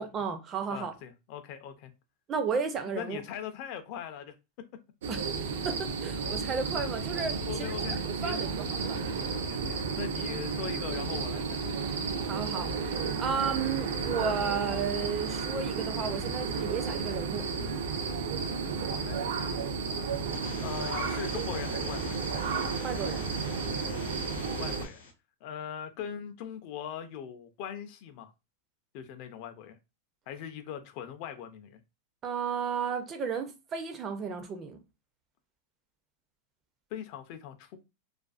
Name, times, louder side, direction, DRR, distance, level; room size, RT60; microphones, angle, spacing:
voice 1, 0.0-0.9 2.3-3.2 5.1-9.0 12.2-17.4 22.8-23.2 32.2-34.8, right 6 dB, 25° right, 0.4 m, -33 dB
voice 2, 0.7-1.9 2.9-4.3 7.5-8.0 8.2-8.4 9.5-11.6 18.9-19.2 20.6-22.2 24.5-25.0 25.4-28.3 28.9-29.8 30.3-31.8 36.9-37.8, left 9 dB, 45° left, 0.4 m, -40 dB
sound 1, 5.0-24.9, right 5 dB, 85° right, 0.5 m, -32 dB
sound 2, 20.1-25.1, left 2 dB, 85° left, 0.8 m, -42 dB
2.5 x 2.3 x 2.3 m
supercardioid pair, 155°, 0 cm